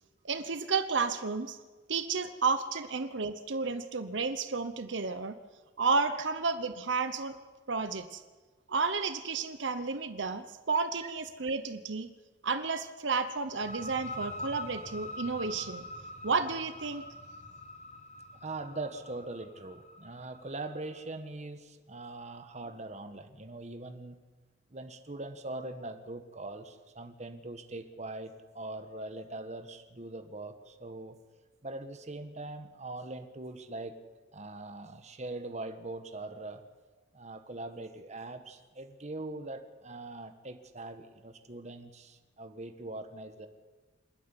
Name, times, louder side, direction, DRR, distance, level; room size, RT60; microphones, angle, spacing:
voice 1, 0.2-1.6 1.9-5.4 5.8-7.4 7.7-8.2 8.7-12.1 12.4-15.9 16.2-17.0, right 4 dB, 75° right, 10 dB, 0.9 m, -32 dB
sound 1, 13.5-21.0, left 1 dB, 35° left, 1.6 m, -44 dB
voice 2, 18.4-24.2 24.7-31.2 31.6-34.0 34.3-36.6 37.1-43.5, right 2 dB, 35° right, 8 dB, 1.4 m, -42 dB
27.5 x 9.7 x 9.9 m, 1.3 s
head